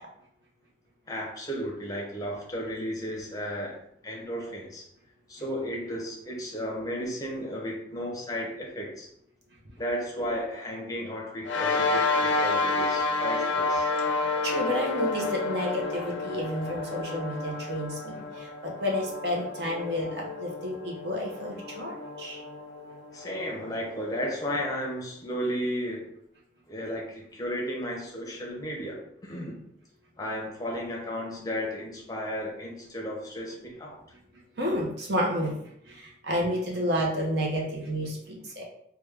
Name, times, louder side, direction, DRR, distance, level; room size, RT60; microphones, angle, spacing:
voice 1, 1.1-4.9 5.3-9.1 9.8-13.9 23.1-26.1 26.7-29.6 30.2-34.0, equal, 20° left, -1 dB, 0.6 m, -34 dB
sound 1, 11.4-24.2, left 3 dB, 70° left, 0.4 m, -30 dB
voice 2, 14.4-22.4 34.6-35.5 35.9-38.6, equal, 55° right, -2 dB, 0.8 m, -30 dB
3.4 x 2.2 x 3.3 m, 0.72 s
head